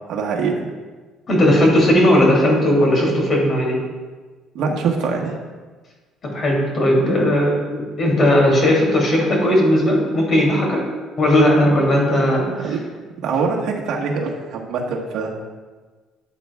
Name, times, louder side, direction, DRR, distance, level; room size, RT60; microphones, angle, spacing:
voice 1, 0.1-0.7 4.5-5.3 12.6-12.8 13.2-15.3, right 5 dB, 65° right, 0 dB, 1.4 m, -23 dB
voice 2, 1.3-3.8 6.2-10.8 11.2-12.4, left 1 dB, 35° left, -2 dB, 2.8 m, -16 dB
13.5 x 8.5 x 2.4 m, 1.4 s
cardioid pair, 150°, 0 cm